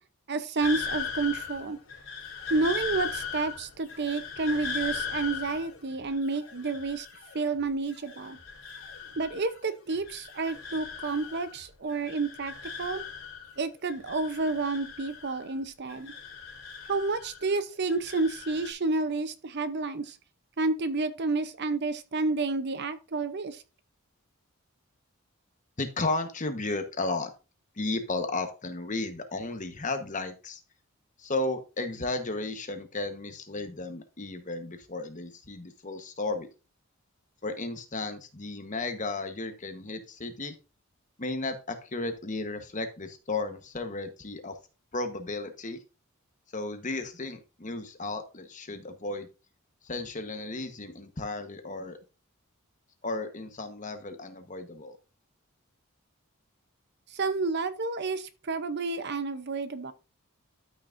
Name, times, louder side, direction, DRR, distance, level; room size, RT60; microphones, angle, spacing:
voice 1, 0.3-1.8 2.5-7.1 7.3-8.4 9.2-12.5 12.8-13.0 13.6-16.1 16.9-20.2 20.6-23.6 57.1-59.9, right 3 dB, 50° right, 0.7 m, -30 dB
sound 1, 0.6-7.6 7.9-9.6 9.9-11.6 11.9-13.6 13.9-15.6 15.9-17.6 17.9-18.7, left 6 dB, 65° left, 3.6 m, -38 dB
voice 2, 25.8-27.3 27.8-30.6 31.2-36.5 37.4-40.5 41.2-44.5 44.9-45.8 46.5-49.3 49.8-52.0 53.0-55.0, left 2 dB, 35° left, 1.1 m, -34 dB
13.0 x 5.9 x 2.6 m
head